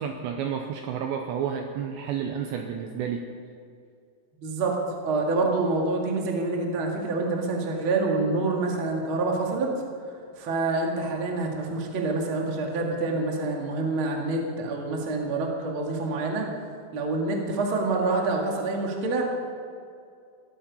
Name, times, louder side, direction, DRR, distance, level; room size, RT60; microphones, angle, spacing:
voice 1, 0.0-3.3, right 7 dB, 85° right, 4 dB, 2.6 m, -31 dB
voice 2, 4.4-4.8 5.0-9.7 10.4-16.5 16.9-19.2, right 3 dB, 60° right, 0 dB, 1.3 m, -27 dB
16.5 x 13.0 x 5.4 m, 2.3 s
omnidirectional pair, 5.9 m